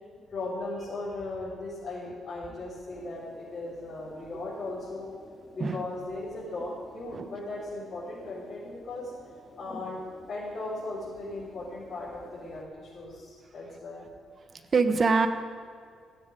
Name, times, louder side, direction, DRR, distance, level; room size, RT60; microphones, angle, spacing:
voice 1, 0.3-5.1 5.5-9.1 9.6-10.0 10.3-14.1, left 2 dB, 45° left, -9 dB, 4.0 m, -37 dB
sound 1, 2.9-12.7, left 2 dB, 20° left, 1.8 m, -52 dB
voice 2, 14.5-15.3, right 4 dB, 40° right, 8 dB, 0.9 m, -24 dB
17.0 x 7.4 x 5.3 m, 2.1 s
cardioid pair, 90°, 0 cm